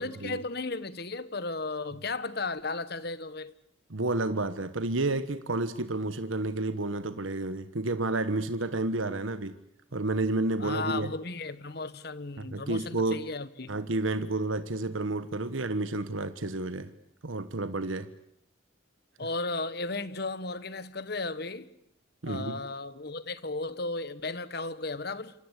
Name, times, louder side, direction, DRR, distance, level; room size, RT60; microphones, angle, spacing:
voice 1, 0.0-3.5 10.6-13.7 19.2-21.7 22.2-25.3, left 3 dB, 50° left, 1.3 m, -35 dB
voice 2, 3.9-9.6 9.9-11.1 12.4-13.2 13.7-16.9 17.2-18.1 22.2-22.6, right 2 dB, 80° right, 1.3 m, -30 dB
27.0 x 25.5 x 8.3 m
head